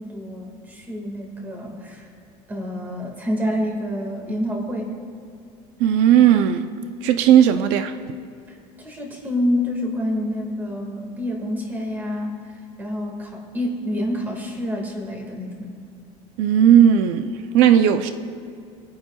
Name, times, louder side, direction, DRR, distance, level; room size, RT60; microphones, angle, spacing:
voice 1, 0.0-2.1 2.5-5.0 8.8-15.7, left 1 dB, 15° right, 0 dB, 1.9 m, -28 dB
voice 2, 5.8-6.7 7.0-8.0 16.4-18.1, right 9 dB, 65° right, 8 dB, 0.5 m, -16 dB
26.5 x 9.4 x 2.3 m, 2.4 s
cardioid pair, 180°, 14 cm